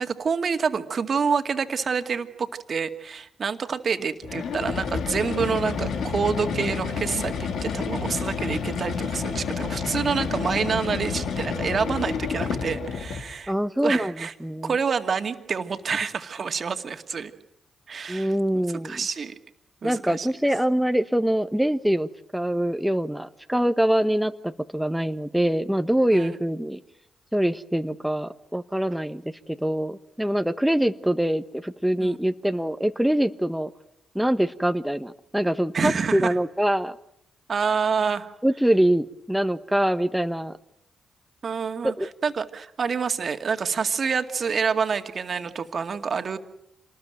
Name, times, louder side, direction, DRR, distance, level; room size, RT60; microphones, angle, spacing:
voice 1, 0.0-13.5 13.8-14.3 14.6-17.3 17.9-18.3 18.8-19.3 19.8-20.3 26.1-26.4 32.0-32.2 35.7-36.3 37.5-38.3 41.4-46.4, right 6 dB, 55° right, 7 dB, 2.2 m, -27 dB
sound 1, 4.2-13.3, left 6 dB, 70° left, 2.1 m, -29 dB
voice 2, 13.5-14.7 18.1-19.0 19.8-26.8 27.3-29.2 29.6-33.7 34.1-37.0 38.4-40.6 41.8-42.1, right 1 dB, 5° right, 8 dB, 1.3 m, -24 dB
27.0 x 20.0 x 9.2 m, 0.79 s
hypercardioid pair, 40°, 0 cm